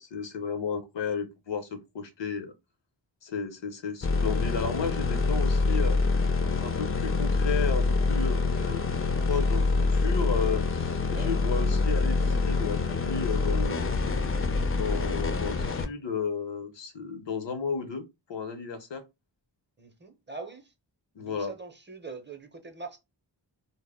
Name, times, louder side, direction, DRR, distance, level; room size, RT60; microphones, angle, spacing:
voice 1, 0.0-2.5 3.2-6.2 6.6-8.9 9.3-13.9 14.7-19.0 21.2-21.5, left 5 dB, 75° left, 0.7 m, -33 dB
sound 1, 4.0-15.9, left 3 dB, 30° left, 0.4 m, -26 dB
voice 2, 10.9-11.3 19.8-20.7 21.2-23.0, right 4 dB, 25° right, 0.6 m, -43 dB
2.1 x 2.0 x 3.3 m
wide cardioid pair, 75°, 44 cm